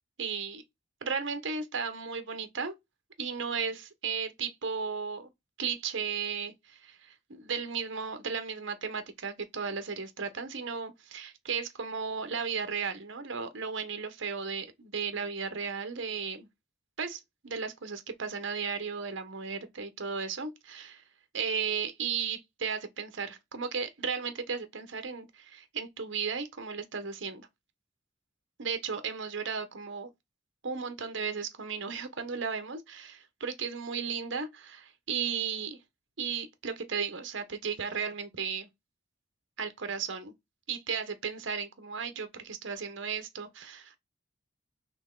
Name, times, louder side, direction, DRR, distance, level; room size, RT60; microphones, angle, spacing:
voice 1, 0.2-0.6 1.0-2.7 3.2-5.3 5.6-16.5 17.0-21.0 21.3-27.5 28.6-30.1 30.6-35.8 36.2-38.7 39.6-40.3 40.7-44.0, right 6 dB, 75° right, 0.9 m, -35 dB
4.3 x 3.2 x 3.7 m
head